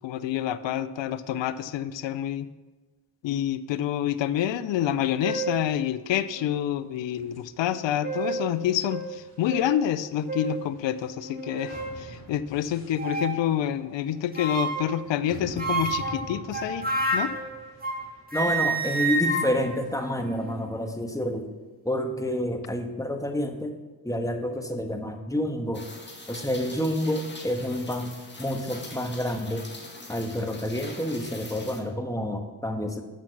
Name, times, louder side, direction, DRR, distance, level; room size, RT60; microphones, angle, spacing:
voice 1, 0.0-2.5 3.2-16.9 17.1-17.3, left 11 dB, 65° left, 16 dB, 0.6 m, -28 dB
sound 1, 4.8-4.9 5.2-5.6 6.3-6.4 7.7-8.5 8.9-9.0 9.5-9.7 10.3-10.6 11.2-12.0 13.0-13.4 14.3-14.9 15.6-18.0 18.3-20.6, right 2 dB, 20° right, 2.2 m, -29 dB
sound 2, 7.2-20.4, left 2 dB, 50° left, 3.5 m, -47 dB
voice 2, 18.3-21.5 21.8-23.7 24.0-25.9 26.3-29.7 30.1-33.0, equal, 5° left, 4 dB, 1.5 m, -29 dB
Rain, 25.7-31.8, left 2 dB, 25° left, 2.1 m, -43 dB
9.2 x 5.9 x 5.9 m, 1.2 s
hypercardioid pair, 40°, 47 cm